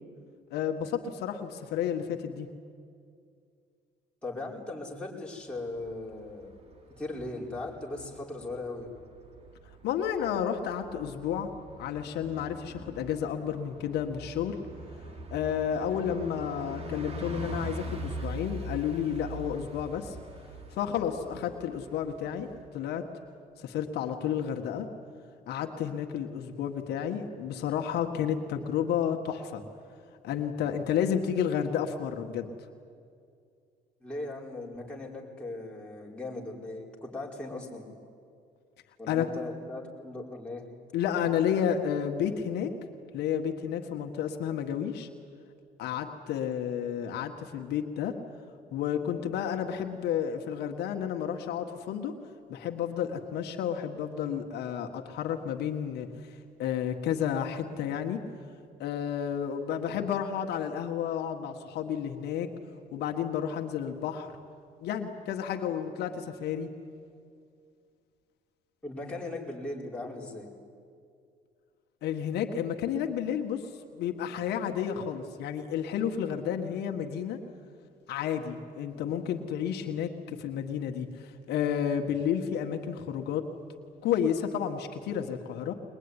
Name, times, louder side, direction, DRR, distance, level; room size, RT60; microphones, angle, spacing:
voice 1, 0.5-2.5 9.8-14.6 15.3-20.2 20.7-23.1 23.6-24.9 25.5-29.6 30.2-32.5 39.1-39.3 40.9-42.7 43.1-45.1 45.8-48.2 48.7-52.2 52.5-58.2 58.8-62.5 62.9-64.4 64.8-66.7 72.0-77.4 78.1-83.5 84.0-85.7, left 8 dB, 75° left, 4 dB, 1.6 m, -31 dB
voice 2, 4.2-6.5 7.0-8.9 34.0-37.8 39.0-40.6 68.8-70.5, left 2 dB, 5° left, -3 dB, 5.2 m, -38 dB
Bus, 5.6-22.7, right 1 dB, 35° right, 3.1 m, -43 dB
22.5 x 21.0 x 9.9 m, 2.3 s
cardioid pair, 110°, 17 cm